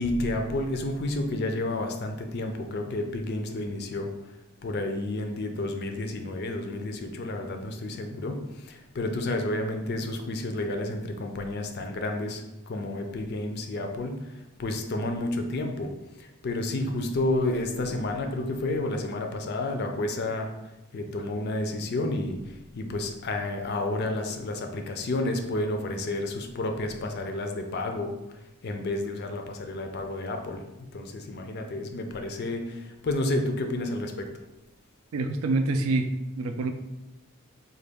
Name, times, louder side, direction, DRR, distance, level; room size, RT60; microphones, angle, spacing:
voice 1, 0.0-4.1 4.6-14.2 14.6-15.9 16.2-20.5 20.9-22.4 22.7-28.1 28.6-30.6 30.9-34.3, left 2 dB, 50° left, 4 dB, 0.4 m, -30 dB
voice 2, 35.1-36.1 36.4-36.7, right 2 dB, 70° right, 7 dB, 0.3 m, -26 dB
3.9 x 2.2 x 3.4 m, 0.96 s
head